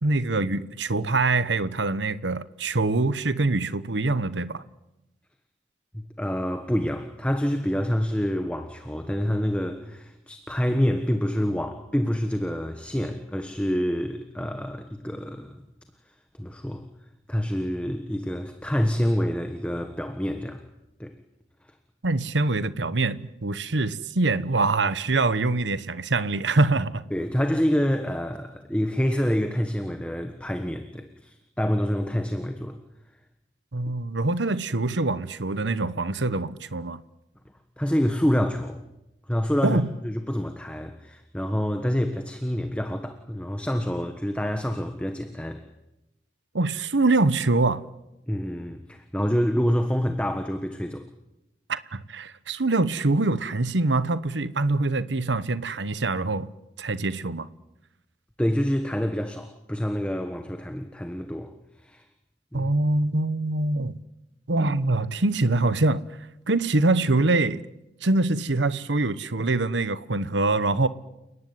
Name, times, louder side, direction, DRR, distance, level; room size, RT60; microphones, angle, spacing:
voice 1, 0.0-4.6 22.0-27.0 33.7-37.0 39.6-39.9 46.5-47.8 51.7-56.5 56.8-57.5 62.5-63.9 64.5-66.0 66.5-67.6 68.0-70.9, right 2 dB, 85° right, 1.1 m, -24 dB
voice 2, 5.9-15.6 16.4-16.8 17.3-20.6 21.0-21.1 27.1-32.8 37.8-38.8 39.3-45.6 48.3-51.1 58.4-61.5 61.8-62.0 62.5-62.7, equal, 5° left, 1.4 m, -27 dB
30.0 x 18.0 x 9.6 m
head